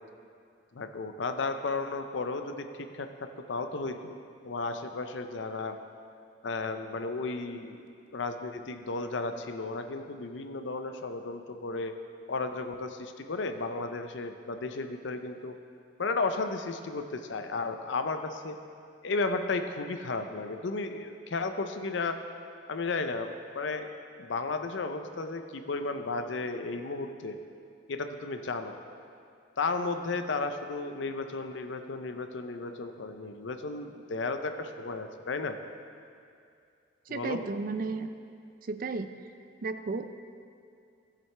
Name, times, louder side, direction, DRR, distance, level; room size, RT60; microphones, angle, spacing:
voice 1, 0.7-4.2 4.4-5.8 6.4-7.9 8.1-12.0 12.3-15.5 16.0-18.6 19.0-22.2 22.7-23.9 24.2-27.4 27.9-28.7 29.6-35.6 37.1-37.4, left 3 dB, 70° left, 7 dB, 0.6 m, -34 dB
voice 2, 37.1-38.1 38.6-39.1 39.6-40.2, right 3 dB, 45° right, 10 dB, 0.4 m, -33 dB
13.5 x 7.6 x 3.3 m, 2.4 s
head